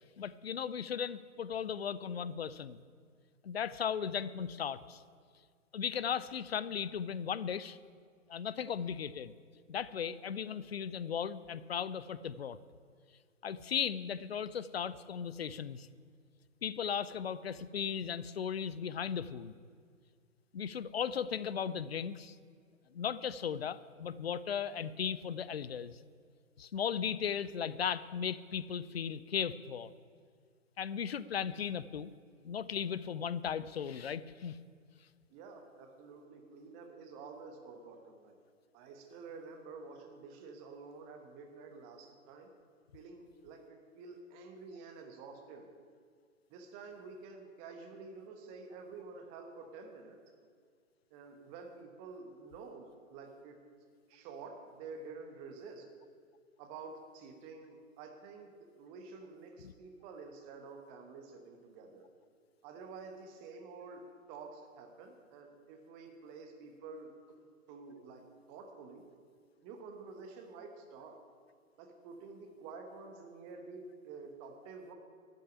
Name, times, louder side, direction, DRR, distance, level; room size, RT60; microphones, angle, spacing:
voice 1, 0.2-2.8 3.4-5.0 5.7-7.8 8.3-9.3 9.7-12.6 13.4-15.9 16.6-19.5 20.5-22.4 22.9-26.0 26.6-29.9 30.8-32.1 32.4-34.6 59.6-59.7, left 7 dB, 50° left, 17 dB, 0.5 m, -36 dB
voice 2, 35.3-38.3 38.7-42.5 42.9-45.7 46.5-50.2 51.1-53.6 54.1-55.8 56.6-58.5 58.8-62.1 62.6-64.0 64.3-67.1 67.7-68.2 68.5-69.0 69.6-71.2 71.8-74.9, right 4 dB, 15° right, 4 dB, 1.0 m, -49 dB
13.0 x 6.5 x 8.6 m, 2.1 s
figure-of-eight pair, 130°, 41 cm